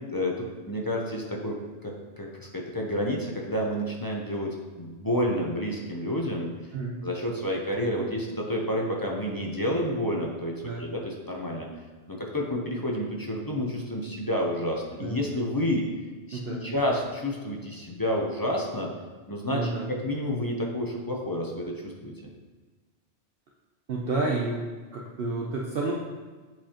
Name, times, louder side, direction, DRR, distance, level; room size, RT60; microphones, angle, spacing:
voice 1, 0.1-6.5 7.0-11.7 12.1-15.9 16.3-18.9 19.3-22.1, equal, 25° left, -1 dB, 0.5 m, -30 dB
voice 2, 16.3-16.7 19.5-19.9 23.9-24.7 24.9-25.9, right 3 dB, 60° right, -2 dB, 0.8 m, -30 dB
7.6 x 4.7 x 2.9 m, 1.4 s
omnidirectional pair, 1.2 m